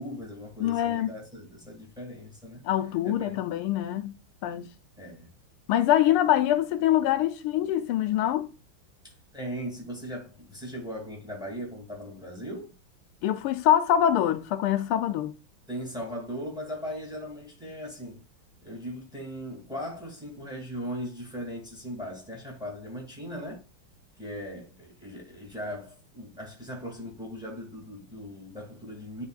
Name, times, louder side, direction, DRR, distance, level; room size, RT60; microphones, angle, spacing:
voice 1, 0.0-2.6 3.0-3.5 5.0-5.3 9.3-12.7 15.7-18.2 18.6-23.6 24.2-29.2, equal, ahead, 2.2 m, -38 dB
voice 2, 0.6-1.2 2.6-4.7 5.7-8.5 13.2-15.4, left 11 dB, 85° left, 1.5 m, -24 dB
9.7 x 4.4 x 2.4 m
omnidirectional pair, 2.3 m